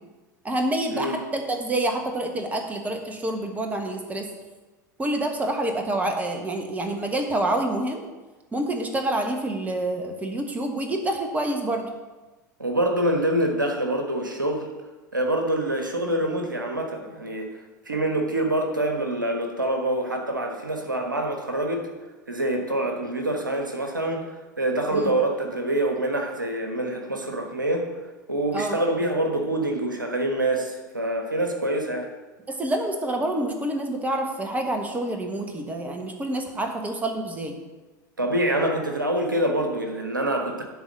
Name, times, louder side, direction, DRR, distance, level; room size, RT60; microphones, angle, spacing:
voice 1, 0.4-4.3 5.0-8.0 8.5-11.9 24.9-25.2 28.5-28.8 32.5-37.6, right 1 dB, 15° right, 4 dB, 1.4 m, -27 dB
voice 2, 12.6-14.7 15.1-17.5 17.9-21.9 22.3-24.3 24.6-27.9 28.3-32.1 38.2-40.6, right 1 dB, 80° right, 3 dB, 1.3 m, -25 dB
11.0 x 4.1 x 7.5 m, 1.2 s
figure-of-eight pair, 80°, 10 cm